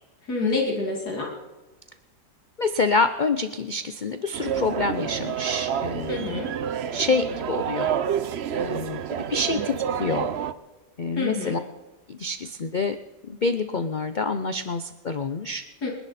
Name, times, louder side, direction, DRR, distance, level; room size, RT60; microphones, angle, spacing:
voice 1, 0.3-1.3 6.1-6.5 11.2-11.6 15.8-15.9, left 3 dB, 65° left, -1 dB, 3.0 m, -27 dB
voice 2, 2.6-6.2 6.9-7.9 8.6-10.3 11.0-11.6 12.1-13.0 13.2-15.6, left 3 dB, 90° left, 10 dB, 0.4 m, -27 dB
sound 1, 4.3-10.5, right 8 dB, 60° right, 0.6 m, -29 dB
29.5 x 10.5 x 4.2 m, 1.2 s
omnidirectional pair, 1.8 m